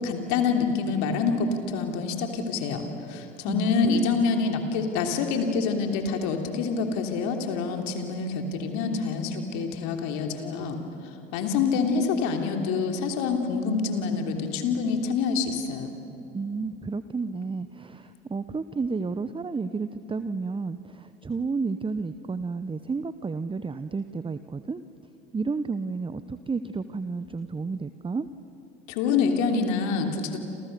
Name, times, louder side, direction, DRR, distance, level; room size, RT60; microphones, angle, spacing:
voice 1, 0.0-15.9 28.9-30.4, left 5 dB, 65° left, 4 dB, 3.2 m, -26 dB
voice 2, 3.5-4.1 16.3-24.8 25.3-28.3, right 4 dB, 15° right, 12 dB, 0.9 m, -31 dB
29.5 x 27.0 x 6.8 m, 2.7 s
hypercardioid pair, 60°, 31 cm